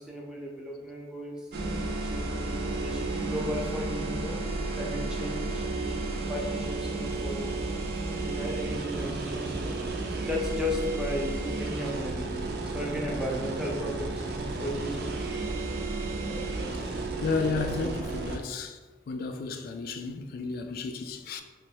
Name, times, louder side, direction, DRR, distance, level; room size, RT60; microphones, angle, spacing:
voice 1, 0.0-1.5 2.0-4.4 4.7-7.5 7.8-7.9 8.2-9.7 10.2-15.1 16.3-16.7 17.5-18.0, left 1 dB, 5° right, 0.5 m, -35 dB
sound 1, 1.5-18.4, right 2 dB, 60° right, 0.5 m, -32 dB
voice 2, 17.2-18.8 19.1-21.4, left 4 dB, 55° left, 0.3 m, -32 dB
3.2 x 2.1 x 4.2 m
head